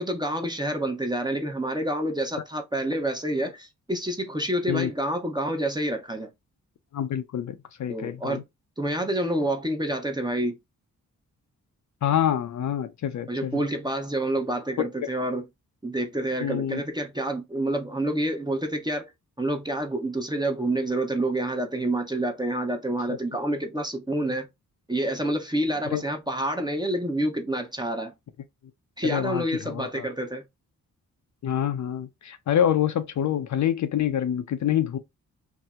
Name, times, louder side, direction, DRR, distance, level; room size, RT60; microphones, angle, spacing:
voice 1, 0.0-6.3 7.9-8.4 8.8-10.5 13.3-15.5 15.8-19.1 19.4-24.5 24.9-28.1 29.0-30.4, right 1 dB, 10° right, 0.7 m, -28 dB
voice 2, 6.9-8.4 12.0-13.6 15.0-15.1 16.4-16.8 23.1-23.2 25.9-26.0 29.0-30.1 31.4-35.0, left 10 dB, 55° left, 0.5 m, -26 dB
2.7 x 2.0 x 3.4 m
cardioid pair, 60°, 34 cm